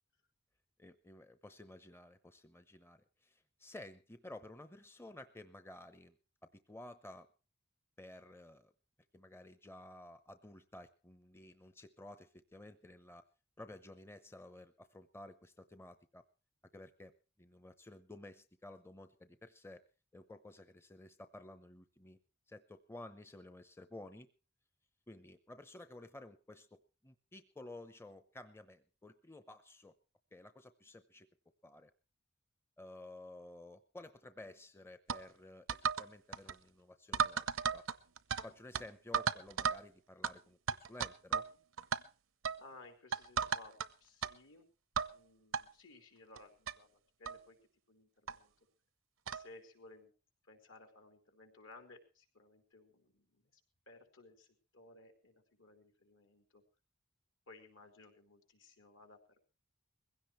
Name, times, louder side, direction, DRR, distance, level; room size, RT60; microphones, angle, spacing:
voice 1, 0.8-6.2 6.4-7.3 8.0-8.7 9.1-13.2 13.6-16.2 16.7-17.1 17.4-19.8 20.1-22.2 22.5-24.3 25.1-29.9 30.3-31.3 31.6-31.9 32.8-37.8 38.4-40.6 40.9-41.5, left 1 dB, 10° left, 10 dB, 0.8 m, -53 dB
sound 1, 35.1-35.2 35.7-36.1 36.3-36.5 37.1-38.4 38.7-38.8 39.1-39.8 40.2-40.3 40.7-41.5 41.8-42.0 42.4-42.6 43.1-43.9 44.2-44.3 45.0-45.1 45.5-45.6 46.4-46.5 46.7-46.8 47.2-47.4 48.3-48.4 49.3-49.5, right 6 dB, 75° right, 0.8 m, -34 dB
voice 2, 42.6-44.7 45.0-47.6 47.9-48.5 49.3-50.1 50.4-53.6 53.9-56.6 57.5-59.5, left 2 dB, 70° left, 4 dB, 4.1 m, -59 dB
21.5 x 16.5 x 3.2 m, 0.33 s
head